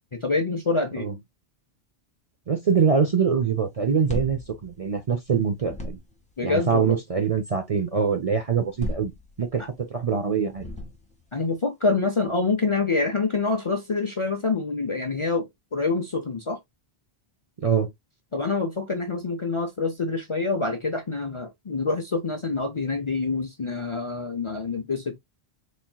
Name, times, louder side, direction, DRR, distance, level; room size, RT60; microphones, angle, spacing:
voice 1, 0.1-1.1 6.4-7.0 9.6-9.7 11.3-16.6 18.3-25.2, left 3 dB, 40° left, 0.5 m, -26 dB
voice 2, 2.5-6.0 6.4-9.1 9.4-9.6 9.9-10.6 17.6-17.9, right 6 dB, 45° right, 0.5 m, -24 dB
sound 1, 3.8-5.3 5.6-6.3 8.5-9.7 10.5-11.3, left 1 dB, 5° left, 1.1 m, -36 dB
4.3 x 3.5 x 2.2 m
omnidirectional pair, 1.1 m